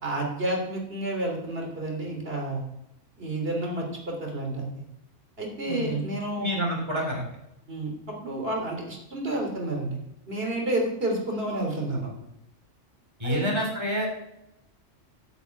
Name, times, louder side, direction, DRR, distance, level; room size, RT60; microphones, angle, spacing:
voice 1, 0.0-2.6 3.2-4.8 5.4-6.5 7.7-10.0 10.3-12.1 13.2-13.5, right 1 dB, 50° right, 0 dB, 3.4 m, -30 dB
voice 2, 5.7-6.0 6.4-7.2 13.2-14.1, equal, 20° right, 0 dB, 4.0 m, -28 dB
11.5 x 6.9 x 8.3 m, 0.83 s
omnidirectional pair, 1.3 m